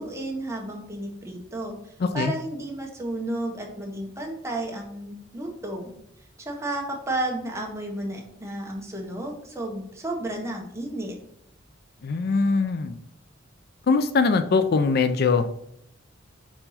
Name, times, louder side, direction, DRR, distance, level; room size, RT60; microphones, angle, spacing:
voice 1, 0.0-5.9 6.4-11.1, right 1 dB, 15° right, 1 dB, 1.1 m, -32 dB
voice 2, 2.0-2.3 12.0-12.9 13.9-15.5, left 4 dB, 55° left, 10 dB, 0.4 m, -22 dB
4.5 x 4.4 x 5.6 m, 0.73 s
head